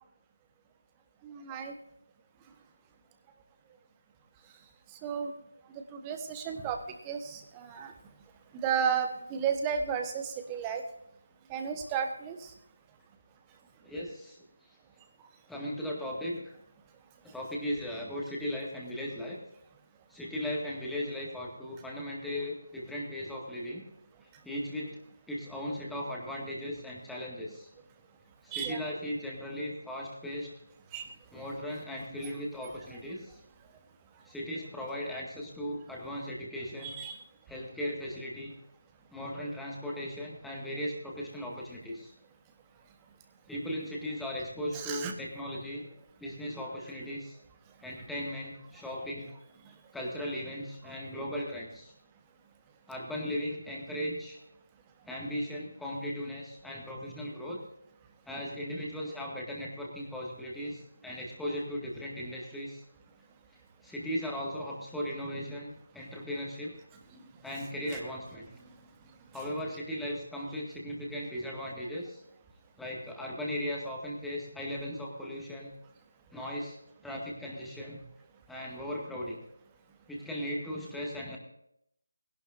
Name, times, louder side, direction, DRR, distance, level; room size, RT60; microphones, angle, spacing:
voice 1, 1.2-1.7 4.9-5.3 5.7-7.9 8.5-10.8 11.5-12.5 28.5-28.8 30.9-31.1 36.8-37.2 44.7-45.1 49.6-49.7, right 7 dB, 15° right, 5 dB, 1.2 m, -33 dB
voice 2, 13.8-14.4 15.5-16.6 17.2-19.4 20.1-23.9 24.4-25.0 25.3-27.7 28.4-30.5 31.3-33.4 34.3-36.9 37.5-38.5 39.1-42.1 43.5-45.9 46.2-47.4 47.8-49.3 49.9-51.9 52.9-54.4 55.1-57.6 58.3-62.8 63.8-66.7 67.4-68.5 69.3-72.2 72.8-75.7 76.3-76.8 77.0-78.0 78.5-79.4 80.1-81.4, equal, ahead, -4 dB, 2.0 m, -37 dB
19.5 x 11.5 x 2.7 m, 0.75 s
figure-of-eight pair, 155°, 0 cm